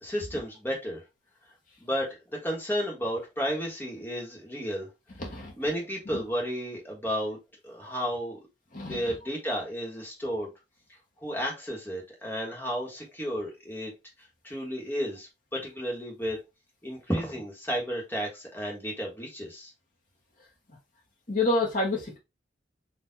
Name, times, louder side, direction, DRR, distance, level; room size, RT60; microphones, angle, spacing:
voice 1, 0.0-1.0 1.8-2.1 2.4-4.9 5.6-7.4 7.6-8.4 8.9-10.5 11.2-13.9 14.4-16.4 16.8-19.7, equal, 10° left, 1.4 m, -32 dB
voice 2, 5.2-5.5 8.7-9.0 21.3-22.2, left 2 dB, 45° left, 1.2 m, -27 dB
4.4 x 2.6 x 3.9 m
head